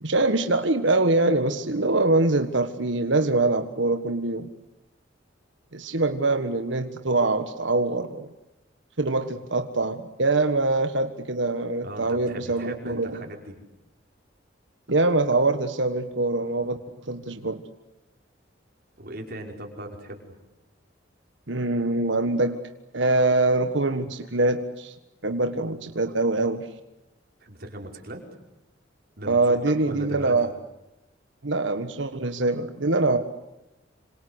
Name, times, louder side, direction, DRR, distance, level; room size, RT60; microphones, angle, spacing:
voice 1, 0.0-4.5 5.7-8.3 9.0-13.1 14.9-16.8 17.1-17.6 21.5-22.7 22.9-24.9 25.2-26.7 29.3-30.5 31.4-33.2, right 2 dB, 70° right, 8 dB, 1.6 m, -24 dB
voice 2, 11.8-13.6 19.0-20.4 27.4-28.2 29.2-30.5, right 1 dB, 50° right, 2 dB, 5.6 m, -38 dB
27.5 x 26.5 x 8.1 m, 0.91 s
head